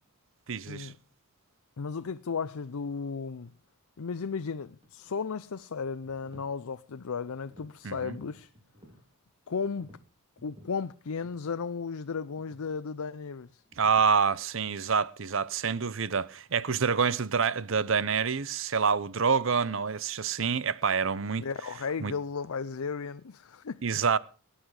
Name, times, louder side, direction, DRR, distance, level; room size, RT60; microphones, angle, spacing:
voice 1, 0.5-0.9 7.8-8.1 13.8-21.5 22.0-22.1 23.8-24.2, right 6 dB, 60° right, 0.7 m, -27 dB
voice 2, 1.8-3.5 4.0-8.5 9.5-9.9 10.4-13.6 21.4-23.8, left 5 dB, 75° left, 0.6 m, -35 dB
sound 1, 3.5-3.6 4.0-5.3 5.8-6.5 6.9-7.7 8.0-9.1 9.7-10.8 11.2-11.4 11.7-11.9 12.3-12.7 13.7-14.1, equal, 25° right, 3.9 m, -55 dB
18.5 x 10.0 x 4.9 m
head